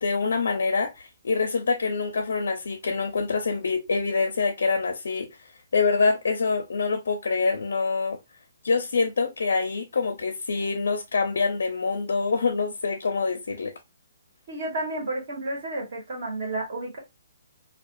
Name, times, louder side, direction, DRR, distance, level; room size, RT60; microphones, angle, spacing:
voice 1, 0.0-5.3 5.7-8.2 8.6-13.7, left 4 dB, 85° left, 0.5 m, -25 dB
voice 2, 14.5-17.0, right 2 dB, 40° right, 1.2 m, -31 dB
2.3 x 2.3 x 2.5 m
hypercardioid pair, 175°, 0 cm